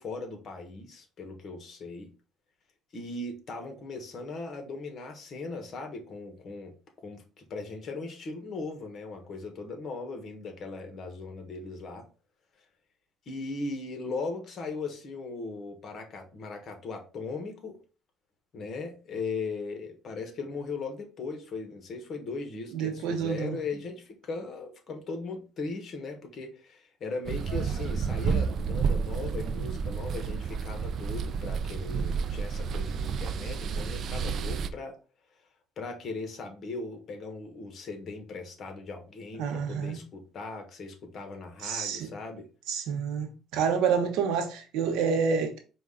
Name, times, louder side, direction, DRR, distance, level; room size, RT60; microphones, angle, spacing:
voice 1, 0.0-2.1 2.9-12.0 13.3-17.8 18.5-35.0 35.8-42.5, left 3 dB, 50° left, 1.2 m, -38 dB
voice 2, 22.7-23.6 39.4-40.0 41.6-42.1 42.7-45.6, right 6 dB, 90° right, 0.9 m, -28 dB
sound 1, 27.2-34.7, right 6 dB, 55° right, 0.4 m, -30 dB
4.9 x 2.4 x 3.7 m
cardioid pair, 110°, 0 cm